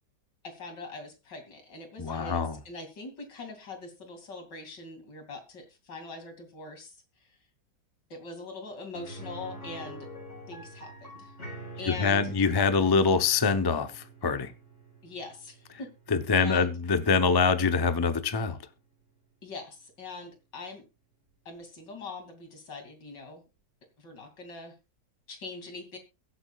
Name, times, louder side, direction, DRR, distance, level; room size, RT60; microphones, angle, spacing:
voice 1, 0.4-7.0 8.1-10.1 10.5-11.3 11.8-12.3 15.0-15.9 16.4-16.8 19.4-20.8 21.4-23.4 24.0-24.7 25.3-26.0, left 3 dB, 80° left, 3.3 m, -42 dB
voice 2, 2.0-2.6 12.0-14.5 16.1-18.6, left 5 dB, 25° left, 0.5 m, -24 dB
sound 1, 8.9-18.7 19.0-19.1 21.5-21.6, right 1 dB, 40° left, 6.1 m, -47 dB
23.0 x 8.0 x 2.4 m
omnidirectional pair, 1.9 m